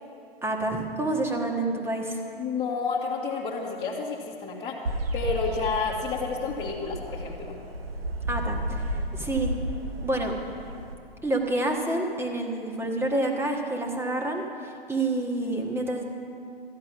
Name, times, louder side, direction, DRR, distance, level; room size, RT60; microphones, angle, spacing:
voice 1, 0.4-2.2 8.3-8.8 9.1-9.5 10.0-10.4 11.2-16.1, right 2 dB, 10° right, 1 dB, 1.6 m, -28 dB
voice 2, 2.4-4.8 5.1-7.6, left 4 dB, 20° left, -7 dB, 1.8 m, -30 dB
sound 1, 4.9-10.9, right 1 dB, 85° right, 1.2 m, -33 dB
14.0 x 10.5 x 6.1 m, 2.4 s
hypercardioid pair, 110°, 29 cm